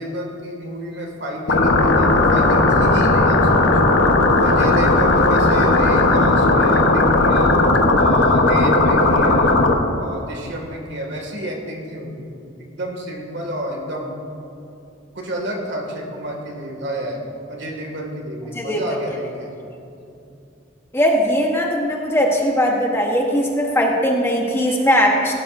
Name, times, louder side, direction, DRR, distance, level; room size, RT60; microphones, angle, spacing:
voice 1, 0.0-4.1 4.4-7.5 7.9-9.6 10.0-14.2 15.1-17.2 17.5-19.6 20.0-20.1, equal, 60° right, 1 dB, 2.1 m, -30 dB
sound 1, 1.5-9.7, left 2 dB, 70° left, 1.1 m, -15 dB
voice 2, 20.9-25.3, equal, 15° left, 0 dB, 1.0 m, -19 dB
17.0 x 12.5 x 2.6 m, 2.7 s
head